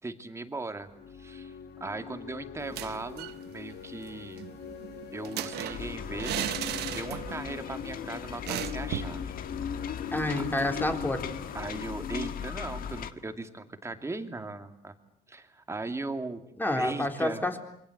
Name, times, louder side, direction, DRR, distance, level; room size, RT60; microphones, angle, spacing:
voice 1, 0.0-1.5 1.8-4.5 5.1-9.3 9.8-10.0 11.5-14.9 15.3-16.4 16.8-17.6, right 3 dB, 15° right, 7 dB, 2.5 m, -38 dB
sound 1, 0.8-13.5, left 7 dB, 80° left, 2.3 m, -45 dB
sound 2, 2.6-3.4 3.7-3.8 4.1-7.5 7.8-8.0 8.5-9.2, right 13 dB, 75° right, 1.1 m, -36 dB
sound 3, 5.7-13.1, left 8 dB, 60° left, 1.7 m, -37 dB
voice 2, 10.1-11.4 16.6-17.6, left 1 dB, 10° left, 4 dB, 3.8 m, -29 dB
27.5 x 24.0 x 8.0 m, 0.75 s
cardioid pair, 110°, 17 cm